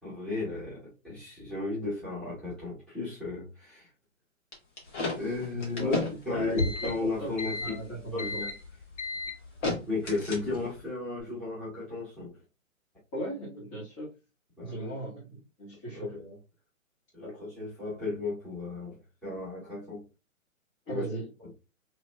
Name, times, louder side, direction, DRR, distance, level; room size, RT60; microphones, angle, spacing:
voice 1, 0.0-3.9 5.1-6.0 6.2-7.8 8.1-8.5 9.8-12.3 14.6-15.0 15.9-16.3 17.1-20.0 20.9-21.0, left 3 dB, ahead, 1.4 m, -34 dB
sound 1, 4.5-10.8, left 3 dB, 60° left, 1.6 m, -33 dB
voice 2, 5.8-6.9 7.2-7.3 7.6-8.5 13.1-14.1 14.6-16.2 20.9-21.3, right 1 dB, 25° left, 1.4 m, -37 dB
3.2 x 2.8 x 2.3 m
hypercardioid pair, 140°, 41 cm